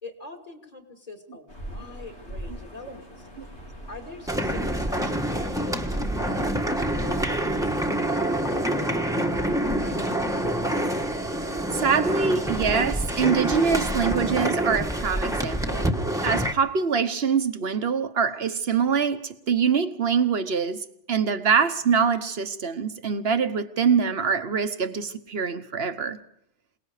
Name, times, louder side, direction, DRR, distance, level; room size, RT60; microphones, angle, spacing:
voice 1, 0.0-3.1 3.9-5.9 6.4-9.1 9.5-10.0, left 3 dB, 35° left, 2.8 m, -44 dB
sound 1, 1.5-15.1, equal, 85° left, 4.5 m, -42 dB
sound 2, 4.3-16.5, right 1 dB, 5° right, 1.3 m, -26 dB
voice 2, 11.7-15.9 16.2-26.2, right 6 dB, 65° right, 1.4 m, -24 dB
27.5 x 19.0 x 5.0 m
omnidirectional pair, 1.1 m